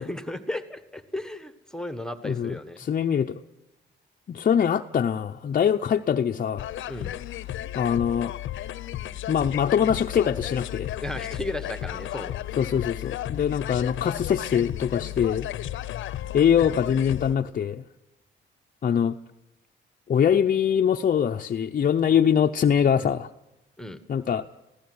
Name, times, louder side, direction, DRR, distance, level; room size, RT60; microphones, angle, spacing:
voice 1, 0.0-2.8 6.9-7.1 11.0-12.4 23.8-24.0, left 1 dB, 5° left, 11 dB, 1.5 m, -34 dB
voice 2, 2.2-3.4 4.3-6.7 7.7-8.3 9.3-10.9 12.6-15.5 16.3-17.8 18.8-19.2 20.1-23.3 24.1-24.5, left 8 dB, 45° left, 4 dB, 0.7 m, -23 dB
sound 1, 6.6-17.4, left 13 dB, 75° left, 0.8 m, -34 dB
21.5 x 16.5 x 9.7 m, 0.94 s
cardioid pair, 90°, 20 cm